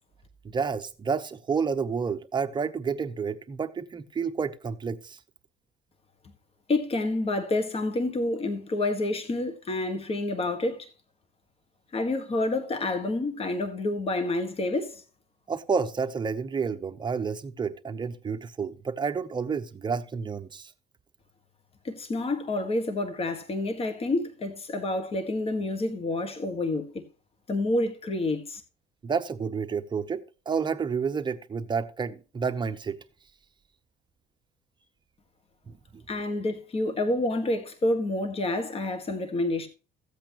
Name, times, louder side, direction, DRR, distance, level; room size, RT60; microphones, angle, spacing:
voice 1, 0.4-5.2 15.5-20.7 29.0-33.0 35.7-36.0, right 5 dB, 25° right, 0.9 m, -30 dB
voice 2, 6.7-10.9 11.9-15.0 21.8-27.0 27.5-28.6 36.1-39.7, left 2 dB, 35° left, 1.7 m, -28 dB
14.5 x 8.2 x 3.0 m
cardioid pair, 110°, 17 cm